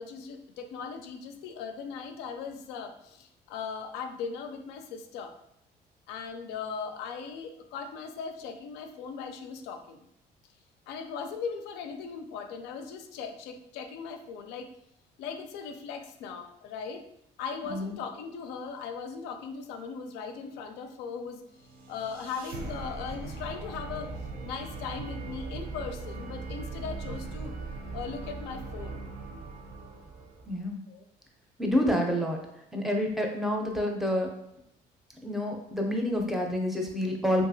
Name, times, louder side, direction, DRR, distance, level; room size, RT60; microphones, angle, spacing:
voice 1, 0.0-5.4 6.1-10.0 10.9-14.7 15.2-17.0 17.4-21.4 21.9-24.1 24.4-27.5 27.9-29.0 30.9-31.0, left 5 dB, 90° left, 6 dB, 0.4 m, -38 dB
sound 1, 21.5-30.6, right 3 dB, 60° right, 0.6 m, -39 dB
voice 2, 30.5-30.8 31.6-32.4 32.7-34.3 35.2-37.4, left 1 dB, ahead, 1 dB, 0.5 m, -28 dB
2.7 x 2.4 x 2.6 m, 0.78 s
cardioid pair, 110°, 17 cm